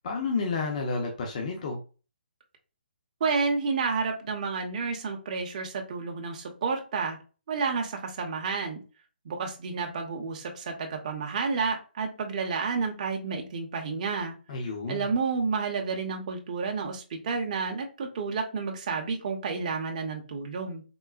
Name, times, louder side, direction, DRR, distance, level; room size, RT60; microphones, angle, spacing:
voice 1, 0.0-1.8 14.5-15.1, left 4 dB, 40° left, 2 dB, 0.6 m, -31 dB
voice 2, 3.2-7.2 7.5-8.8 9.2-14.3 14.9-20.8, right 4 dB, 40° right, 2 dB, 0.6 m, -30 dB
3.7 x 2.0 x 2.3 m, 0.34 s
hypercardioid pair, 160°, 6 cm